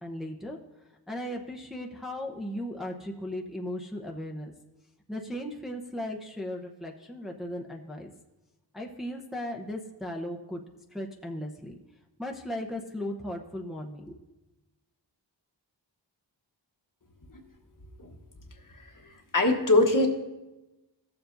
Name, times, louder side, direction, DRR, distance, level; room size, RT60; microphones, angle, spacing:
voice 1, 0.0-0.6 1.1-4.5 5.1-8.1 8.7-10.6 10.9-11.8 12.2-14.2, left 1 dB, ahead, 0 dB, 0.8 m, -36 dB
voice 2, 19.3-20.1, left 2 dB, 45° left, 3 dB, 1.2 m, -21 dB
15.5 x 7.2 x 2.6 m, 1.0 s
wide cardioid pair, 55°, 44 cm